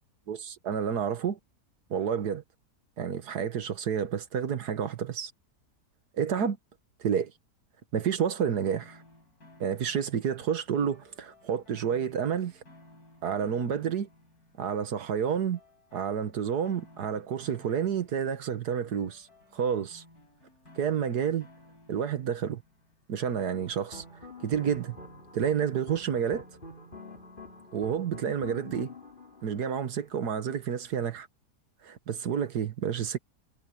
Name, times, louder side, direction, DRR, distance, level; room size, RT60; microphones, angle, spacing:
voice 1, 0.3-1.4 1.9-2.4 3.0-5.3 6.1-6.6 7.0-7.3 7.9-9.0 9.6-12.5 13.2-14.1 14.6-15.6 15.9-19.3 19.5-20.0 20.8-21.5 21.9-22.6 23.1-24.0 24.4-25.0 25.3-26.4 27.7-28.9 29.4-31.3 31.8-33.2, right 7 dB, 75° right, 1.9 m, -29 dB
sound 1, 8.7-24.6, left 1 dB, 65° left, 8.4 m, -58 dB
sound 2, 23.5-30.2, left 3 dB, 30° left, 3.8 m, -47 dB
omnidirectional pair, 1.7 m